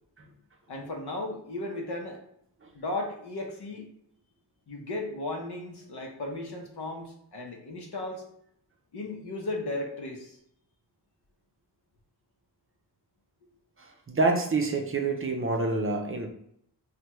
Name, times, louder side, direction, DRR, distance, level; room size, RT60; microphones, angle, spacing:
voice 1, 0.7-2.2 2.7-3.9 4.7-8.2 8.9-10.4, left 2 dB, 75° left, 1 dB, 0.8 m, -35 dB
voice 2, 13.8-16.3, right 3 dB, 35° right, 2 dB, 0.5 m, -27 dB
3.3 x 2.2 x 3.0 m, 0.71 s
wide cardioid pair, 90°, 40 cm